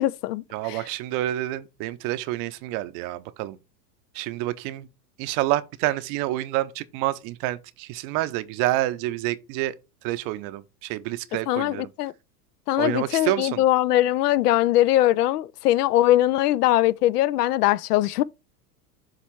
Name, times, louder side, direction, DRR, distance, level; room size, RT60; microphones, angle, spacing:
voice 1, 0.0-0.8 11.5-12.1 12.7-18.2, left 14 dB, 70° left, 0.5 m, -21 dB
voice 2, 0.5-3.6 4.1-4.9 5.2-9.7 10.0-11.9 12.8-13.6, right 15 dB, 40° right, 0.6 m, -28 dB
7.4 x 3.2 x 4.6 m
hypercardioid pair, 100°, 50 cm